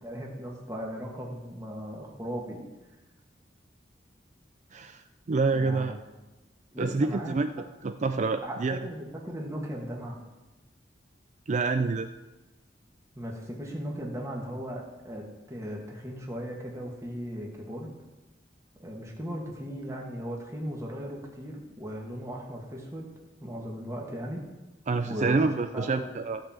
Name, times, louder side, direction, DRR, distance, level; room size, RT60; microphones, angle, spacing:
voice 1, 0.0-2.6 5.5-6.1 6.7-7.4 8.4-10.2 13.2-18.0 18.8-23.1 23.4-24.4 25.1-25.4 25.7-26.1, equal, 15° right, -1 dB, 1.8 m, -37 dB
voice 2, 4.7-5.0 5.3-6.0 6.8-7.5 7.8-8.8 11.5-12.1 24.9-26.4, right 3 dB, 40° right, 9 dB, 0.4 m, -27 dB
14.5 x 5.5 x 7.4 m, 1.1 s
head